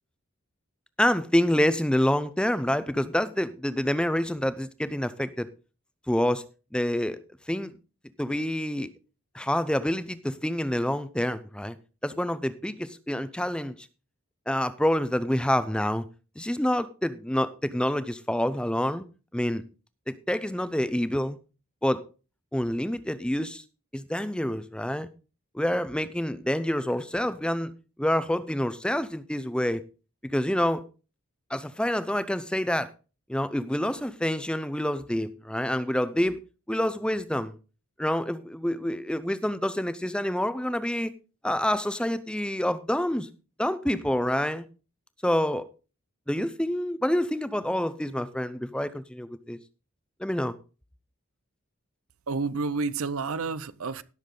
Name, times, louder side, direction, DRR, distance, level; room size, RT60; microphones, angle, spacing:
voice 1, 1.0-5.5 6.1-6.4 6.7-7.2 7.5-7.7 8.2-8.9 9.3-11.8 12.0-13.9 14.5-16.0 16.4-19.0 19.3-19.6 20.1-21.4 21.8-22.0 22.5-23.6 23.9-25.1 25.5-27.7 28.0-29.8 30.2-30.8 31.5-32.9 33.3-36.4 36.7-37.6 38.0-41.1 41.4-43.3 43.6-44.6 45.2-45.7 46.3-49.6 50.2-50.6, left 1 dB, 5° left, 0.5 m, -27 dB
voice 2, 52.3-54.0, right 4 dB, 85° right, 0.7 m, -30 dB
17.0 x 7.0 x 3.8 m
head